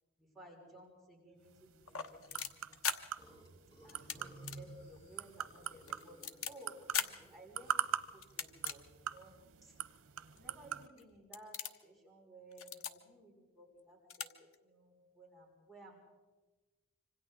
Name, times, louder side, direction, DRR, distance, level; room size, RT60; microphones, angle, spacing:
voice 1, 0.2-2.2 2.5-2.8 3.8-7.9 8.1-9.4 9.6-9.8 10.3-16.0, right 1 dB, ahead, -3 dB, 5.9 m, -57 dB
sound 1, 1.4-10.9, right 9 dB, 90° right, 0.8 m, -43 dB
sound 2, 1.8-3.0 3.9-4.2 4.4-4.6 5.0-5.1 5.6-6.5 6.9-7.1 8.2-8.8 9.4-9.5 10.4-10.5 10.9-11.1 11.3-11.8 12.5-12.9 13.8-13.9 14.1-14.3 14.5-14.6, left 7 dB, 85° left, 1.2 m, -39 dB
Burping eructation, 3.2-7.9, equal, 25° left, 5.1 m, -61 dB
26.0 x 25.5 x 3.9 m, 1.2 s
head